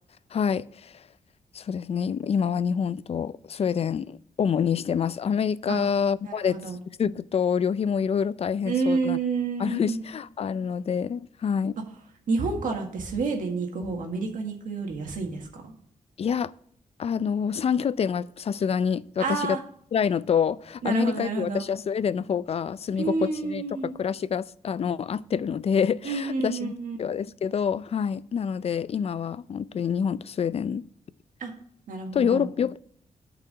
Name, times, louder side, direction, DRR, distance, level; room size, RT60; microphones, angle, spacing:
voice 1, 0.3-1.1 1.5-9.2 9.6-11.8 16.2-16.5 17.0-19.6 19.9-26.7 27.0-30.9 32.1-32.8, left 7 dB, 50° left, 0.4 m, -27 dB
voice 2, 6.2-6.8 8.6-10.0 12.3-15.7 19.2-19.6 20.8-21.6 23.0-24.0 26.0-27.0 31.4-31.5 31.9-32.5, right 4 dB, 85° right, 1.7 m, -29 dB
8.7 x 4.8 x 7.4 m
cardioid pair, 95°, 13 cm